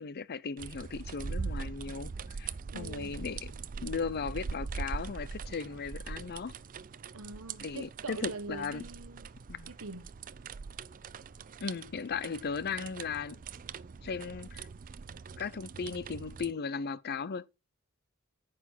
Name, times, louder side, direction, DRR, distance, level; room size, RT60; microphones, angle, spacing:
voice 1, 0.0-3.5 3.8-6.5 7.6-8.8 9.5-9.7 11.6-13.4 14.0-14.7 15.4-17.4, left 5 dB, 50° left, 0.6 m, -37 dB
sound 1, 0.6-16.5, right 5 dB, 40° right, 0.4 m, -42 dB
sound 2, 1.9-7.0, left 2 dB, 20° left, 2.0 m, -63 dB
voice 2, 2.7-3.2 7.1-9.3 9.7-10.0, right 3 dB, 70° right, 1.3 m, -43 dB
9.3 x 6.2 x 5.7 m
head